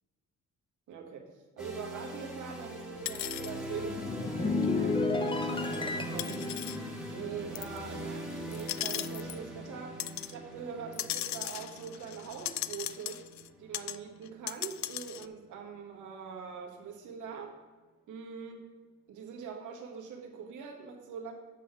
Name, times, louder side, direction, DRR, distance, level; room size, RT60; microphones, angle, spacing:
voice 1, 0.9-1.3 1.6-6.4 7.1-13.2 13.6-17.5 18.1-18.7 19.1-21.3, right 6 dB, 80° right, 2 dB, 1.7 m, -43 dB
sound 1, 1.6-15.4, right 1 dB, ahead, 1.9 m, -42 dB
sound 2, 3.1-3.5 4.6-4.7 6.2-6.8 7.6-7.8 8.5-9.4 10.0-10.3 10.9-13.5 13.7-14.0 14.3-15.3, left 14 dB, 65° left, 0.5 m, -37 dB
sound 3, 3.8-8.5 8.7-9.1, left 3 dB, 15° left, 0.6 m, -33 dB
8.3 x 5.6 x 6.0 m, 1.3 s
cardioid pair, 90°, 30 cm